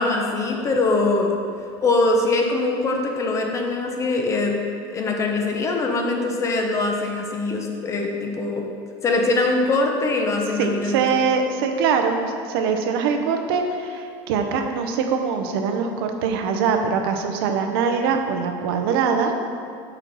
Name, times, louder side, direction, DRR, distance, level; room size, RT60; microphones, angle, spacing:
voice 1, 0.0-1.3 1.8-4.6 4.9-8.6 9.0-11.0, left 2 dB, 25° left, 2 dB, 0.8 m, -22 dB
voice 2, 10.6-19.3, right 5 dB, 80° right, 5 dB, 0.8 m, -23 dB
6.0 x 4.5 x 5.4 m, 2.3 s
supercardioid pair, 145°, 12 cm